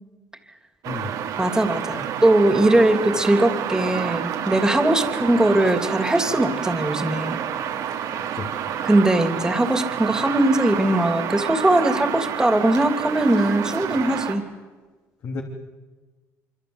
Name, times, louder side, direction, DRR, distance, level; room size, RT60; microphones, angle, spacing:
sound 1, 0.8-14.4, right 9 dB, 75° right, 2.9 m, -29 dB
voice 1, 0.9-1.1 1.9-2.0 8.3-8.5 15.2-15.4, left 4 dB, 55° left, 1 dB, 3.1 m, -31 dB
voice 2, 1.4-7.4 8.8-14.4, right 1 dB, 10° right, 8 dB, 2.9 m, -20 dB
25.0 x 25.0 x 8.1 m, 1.3 s
cardioid pair, 90°, 7 cm